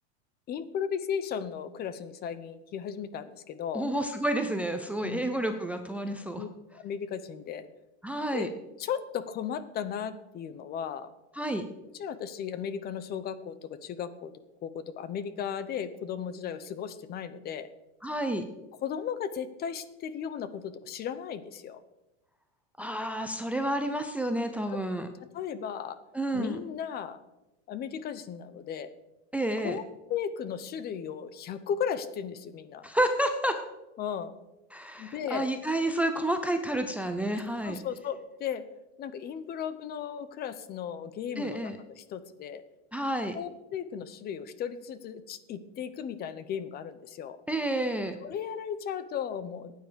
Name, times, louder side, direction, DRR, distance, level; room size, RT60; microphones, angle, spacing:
voice 1, 0.5-3.9 5.0-5.3 6.4-7.7 8.3-8.5 8.8-11.1 11.9-14.3 14.6-17.7 18.8-21.8 24.7-24.8 25.3-26.0 26.3-27.2 27.7-28.9 29.6-32.9 34.0-34.3 35.0-35.5 37.6-38.6 39.0-42.6 43.3-47.4 48.2-49.7, left 8 dB, 30° left, 14 dB, 0.7 m, -36 dB
voice 2, 3.7-6.4 8.0-8.5 11.3-11.6 18.0-18.4 22.8-25.1 26.1-26.6 29.3-29.8 32.8-33.6 34.7-37.8 41.4-41.8 42.9-43.4 47.5-48.2, right 1 dB, 5° right, 7 dB, 0.5 m, -30 dB
16.0 x 9.3 x 5.1 m, 0.96 s
supercardioid pair, 155°, 34 cm